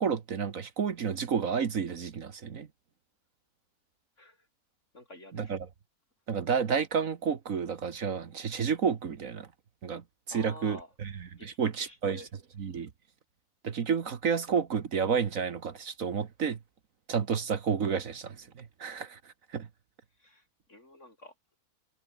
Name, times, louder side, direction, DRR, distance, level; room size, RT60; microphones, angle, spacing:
voice 1, 0.0-2.7 5.3-5.7 6.3-9.5 9.8-10.0 10.3-12.2 12.6-12.9 13.6-16.6 17.1-19.7, right 6 dB, 60° right, 1.7 m, -31 dB
voice 2, 4.9-5.5 10.3-10.9 11.4-11.5 11.8-12.3 20.2-21.3, left 1 dB, 50° left, 7.2 m, -49 dB
omnidirectional pair, 1.6 m